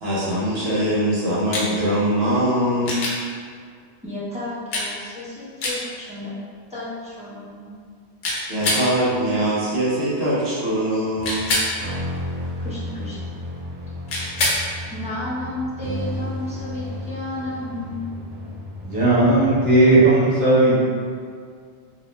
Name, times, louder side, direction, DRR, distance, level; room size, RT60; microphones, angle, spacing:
voice 1, 0.0-3.1 8.5-11.6, right 1 dB, 65° right, -7 dB, 0.9 m, -22 dB
sound 1, 1.5-1.7 2.9-3.2 4.7-4.9 5.6-5.8 8.2-8.9 11.2-11.7 14.1-14.6 16.9-17.0, left 2 dB, 85° left, 0.9 m, -23 dB
voice 2, 4.0-6.3 6.7-7.7 12.6-13.2 14.9-18.1, left 1 dB, 10° right, -11 dB, 0.5 m, -32 dB
sound 2, 11.1-19.7, left 1 dB, 90° right, 0.9 m, -33 dB
voice 3, 18.8-20.8, right 2 dB, 30° right, -11 dB, 1.0 m, -16 dB
2.5 x 2.0 x 3.1 m, 2.1 s
omnidirectional pair, 1.2 m